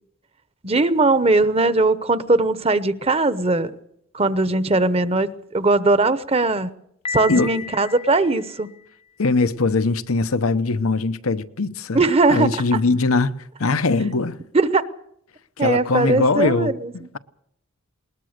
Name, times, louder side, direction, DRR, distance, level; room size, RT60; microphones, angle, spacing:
voice 1, 0.6-3.7 4.1-6.7 7.1-8.7 11.9-12.5 14.5-14.8 15.6-16.9, right 3 dB, 30° right, 0.9 m, -19 dB
Piano, 7.1-9.0, left 6 dB, 25° left, 0.7 m, -33 dB
voice 2, 9.2-12.0 12.3-14.4 15.6-17.2, left 3 dB, 90° left, 0.9 m, -21 dB
20.5 x 20.0 x 6.6 m
head